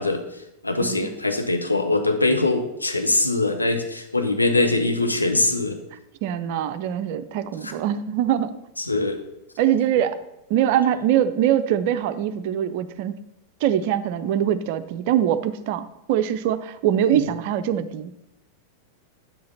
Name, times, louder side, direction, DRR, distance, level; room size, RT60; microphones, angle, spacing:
voice 1, 0.0-5.8 7.6-7.7 8.8-9.2 17.1-17.3, left 2 dB, 80° left, 5 dB, 1.0 m, -23 dB
voice 2, 6.2-8.6 9.6-10.2 10.5-13.2 13.6-18.1, right 10 dB, 50° right, 12 dB, 0.5 m, -23 dB
9.4 x 7.6 x 4.1 m, 0.89 s
figure-of-eight pair, 90°, 0 cm